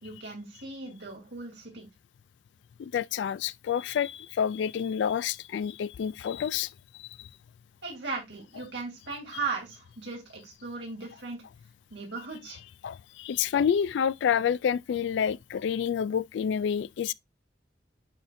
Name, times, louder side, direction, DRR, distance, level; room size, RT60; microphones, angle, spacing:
voice 1, 0.0-1.9 7.8-11.4 11.9-12.6, right 4 dB, 80° right, 3.3 m, -37 dB
voice 2, 2.8-7.3 12.8-17.1, left 8 dB, 85° left, 0.3 m, -28 dB
10.0 x 4.1 x 2.6 m
head